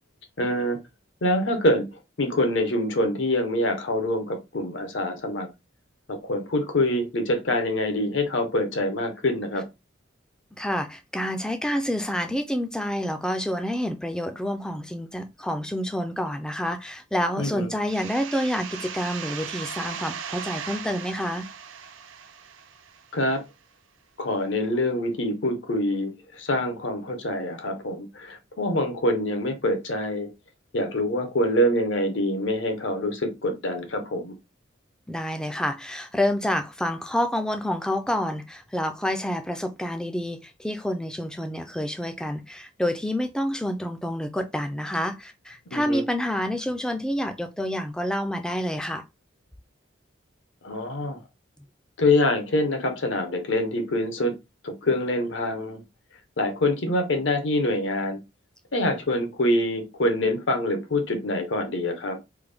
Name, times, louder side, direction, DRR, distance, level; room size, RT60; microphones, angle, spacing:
voice 1, 0.4-0.8 1.2-1.9 2.2-5.5 6.1-9.6 17.4-17.7 23.1-23.4 24.2-30.3 30.7-34.3 45.7-46.0 50.6-51.2 52.0-54.3 54.6-55.8 56.4-58.2 58.7-62.2, left 1 dB, 75° left, 0.8 m, -25 dB
voice 2, 10.6-21.5 35.1-49.0, equal, 5° left, 0.3 m, -28 dB
sound 1, 17.9-23.4, right 7 dB, 85° right, 0.5 m, -38 dB
3.4 x 2.1 x 3.3 m
head